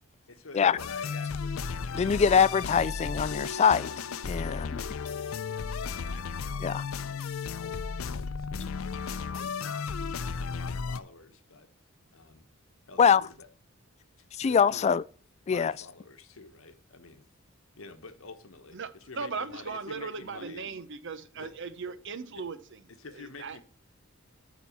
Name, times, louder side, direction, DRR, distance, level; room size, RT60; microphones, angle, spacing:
voice 1, 0.3-2.4 2.6-2.8 4.3-6.2 6.6-8.4 9.4-11.7 12.1-12.4 12.9-13.3 14.4-14.8 15.5-17.2 17.8-18.8 19.1-20.7 21.3-21.5 23.0-23.6, left 3 dB, 70° left, 1.1 m, -49 dB
sound 1, 0.8-11.0, left 5 dB, 85° left, 0.5 m, -34 dB
voice 2, 1.9-3.9 4.3-4.8 6.6-6.8 13.0-13.3 14.4-15.0 15.5-15.7, left 6 dB, 30° left, 0.3 m, -23 dB
voice 3, 18.7-23.6, right 5 dB, 60° right, 0.9 m, -38 dB
8.9 x 4.1 x 7.0 m
head